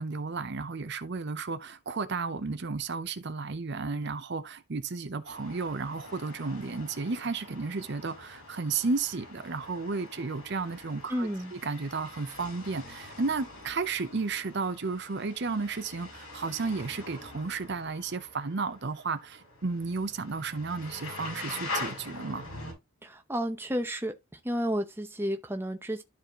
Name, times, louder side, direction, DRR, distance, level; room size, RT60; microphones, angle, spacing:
voice 1, 0.0-22.4, right 4 dB, 50° right, 0.6 m, -33 dB
sound 1, 5.2-22.7, left 2 dB, 75° left, 5.1 m, -44 dB
voice 2, 11.1-11.5 23.0-24.1 24.4-26.0, equal, 10° right, 0.8 m, -31 dB
12.5 x 4.2 x 3.0 m
head